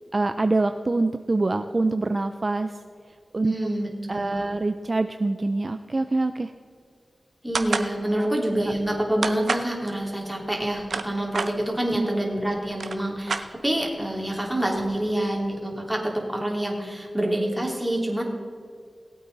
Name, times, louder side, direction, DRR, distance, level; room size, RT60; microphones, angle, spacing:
voice 1, 0.1-2.7 3.3-3.5 4.1-6.5 8.2-8.3 11.9-12.1, right 2 dB, 45° right, 9 dB, 0.5 m, -25 dB
voice 2, 3.4-4.5 7.4-18.2, right 1 dB, 10° right, -1 dB, 3.1 m, -27 dB
sound 1, 7.5-7.9 9.2-9.7 10.6-11.5 12.3-12.4 12.7-13.9, right 4 dB, 80° right, 0.7 m, -28 dB
19.0 x 8.5 x 4.0 m, 2.2 s
cardioid pair, 55°, 0 cm